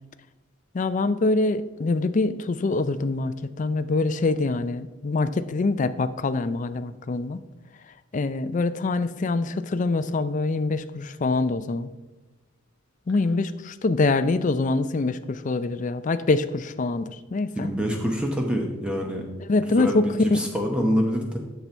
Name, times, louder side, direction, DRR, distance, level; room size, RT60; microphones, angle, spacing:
voice 1, 0.7-7.4 8.1-11.9 13.1-17.7 19.5-20.0 20.3-20.4, left 3 dB, 35° left, 13 dB, 0.4 m, -24 dB
voice 2, 17.5-19.2 19.7-21.4, equal, 5° right, 1 dB, 0.8 m, -26 dB
8.4 x 6.8 x 4.4 m, 1.1 s
head